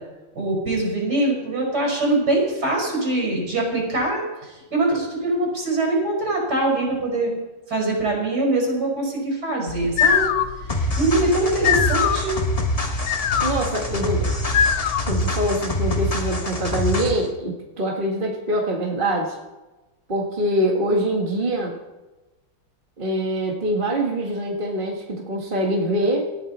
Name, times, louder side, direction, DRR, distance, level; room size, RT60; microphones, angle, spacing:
voice 1, 0.4-7.3 7.7-10.3 10.7-12.4, right 2 dB, 55° right, -1 dB, 5.8 m, -23 dB
sound 1, 9.7-15.3, left 8 dB, 70° left, 1.4 m, -23 dB
sound 2, 10.7-17.3, left 1 dB, 25° left, 1.0 m, -25 dB
voice 2, 13.4-14.4 15.1-19.4 20.1-21.7 23.0-26.3, right 1 dB, 30° right, -1 dB, 1.8 m, -24 dB
18.5 x 14.0 x 4.3 m, 1.1 s
omnidirectional pair, 2.0 m